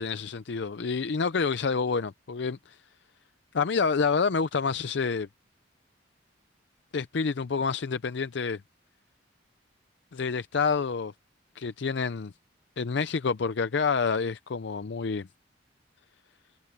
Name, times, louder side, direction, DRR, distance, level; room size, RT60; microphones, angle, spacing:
voice 1, 0.0-2.8 3.5-5.3 6.9-8.6 10.1-11.1 11.6-12.3 12.8-15.3, left 5 dB, 60° left, 0.5 m, -28 dB
head